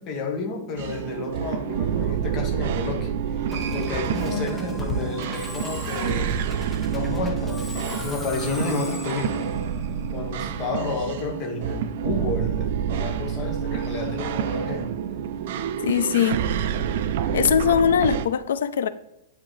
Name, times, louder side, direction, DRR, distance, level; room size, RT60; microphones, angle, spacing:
voice 1, 0.0-6.4 6.9-9.5 10.1-15.0 16.7-16.8, left 3 dB, 20° left, 1 dB, 1.1 m, -31 dB
sound 1, 0.8-18.3, right 8 dB, 45° right, 0.4 m, -28 dB
Musical instrument, 3.5-10.8, equal, 5° left, 0.6 m, -35 dB
voice 2, 15.8-16.4 17.3-18.9, left 8 dB, 80° left, 14 dB, 0.5 m, -21 dB
10.0 x 3.8 x 3.2 m, 0.88 s
supercardioid pair, 175°, 0 cm